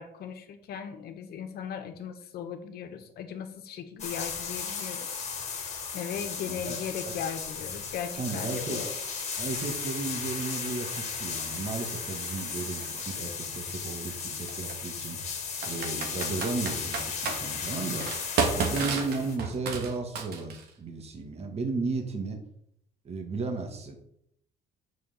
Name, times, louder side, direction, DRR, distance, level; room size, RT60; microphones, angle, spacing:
voice 1, 0.0-5.2 5.9-8.9, left 7 dB, 70° left, 7 dB, 1.5 m, -38 dB
sound 1, 4.0-19.4, left 6 dB, 40° left, 2.1 m, -35 dB
voice 2, 6.5-6.8 7.0-7.1 8.1-8.8 9.4-15.2 15.6-18.1 18.5-22.4 23.0-24.0, right 3 dB, 40° right, 3 dB, 2.1 m, -34 dB
sound 2, 8.2-13.1, right 7 dB, 85° right, 1.8 m, -48 dB
Computer keyboard, 12.8-12.9 14.5-14.7 15.6-17.4 18.0-20.7, right 5 dB, 70° right, 2.1 m, -31 dB
7.0 x 6.3 x 7.7 m, 0.73 s
cardioid pair, 110°, 17 cm